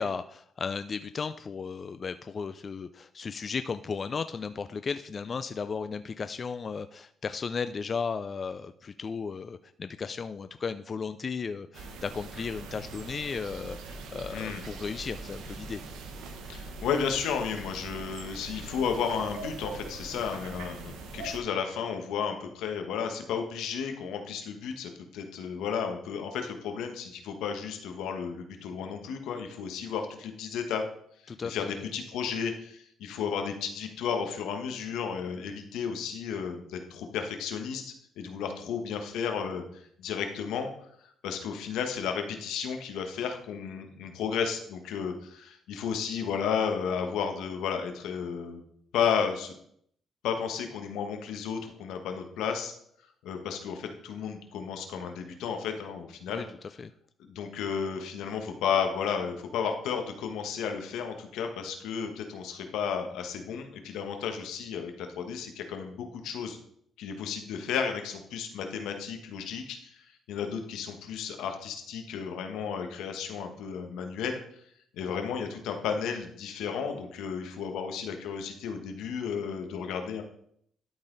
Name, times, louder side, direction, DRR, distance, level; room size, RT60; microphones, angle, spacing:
voice 1, 0.0-15.8 31.3-31.9 56.3-56.4 56.8-56.9, left 5 dB, 40° left, 11 dB, 0.3 m, -35 dB
sound 1, 11.7-21.4, right 3 dB, 90° right, 1.0 m, -42 dB
voice 2, 14.3-14.6 16.5-30.8 31.4-39.6 40.0-40.7 41.2-48.6 48.9-49.5 50.2-52.7 53.2-56.4 57.3-66.6 67.0-74.4 74.9-80.2, left 7 dB, 90° left, 5 dB, 1.2 m, -33 dB
12.0 x 4.1 x 3.9 m, 0.67 s
cardioid pair, 90°, 0 cm